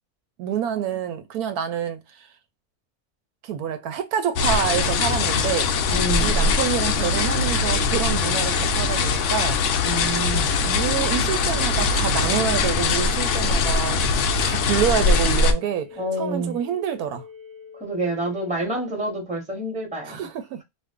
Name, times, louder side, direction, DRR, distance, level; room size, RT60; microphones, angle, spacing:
voice 1, 0.4-2.3 3.4-5.7 6.2-9.6 10.6-14.0 14.4-17.2 20.1-20.6, right 9 dB, 80° right, 1.1 m, -27 dB
sound 1, 4.4-15.5, left 4 dB, 65° left, 0.8 m, -22 dB
voice 2, 5.9-6.5 9.8-10.6 16.0-16.6 17.8-20.3, right 1 dB, 5° right, 0.9 m, -28 dB
sound 2, 11.3-19.2, left 4 dB, 30° right, 0.6 m, -45 dB
2.5 x 2.4 x 3.5 m
omnidirectional pair, 1.6 m